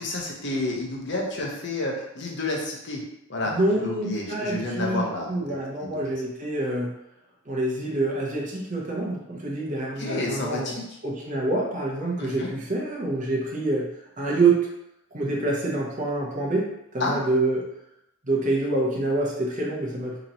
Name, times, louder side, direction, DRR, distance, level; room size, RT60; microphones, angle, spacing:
voice 1, 0.0-3.0 3.3-5.4 5.8-6.1 10.0-10.8 12.2-12.5 17.0-17.2, left 2 dB, 55° left, -1 dB, 0.8 m, -30 dB
voice 2, 3.5-5.0 5.3-6.9 7.5-10.8 11.0-13.9 14.2-14.6 15.1-17.7 18.2-20.2, right 2 dB, 35° right, -3 dB, 0.7 m, -26 dB
2.9 x 2.9 x 3.9 m, 0.83 s
head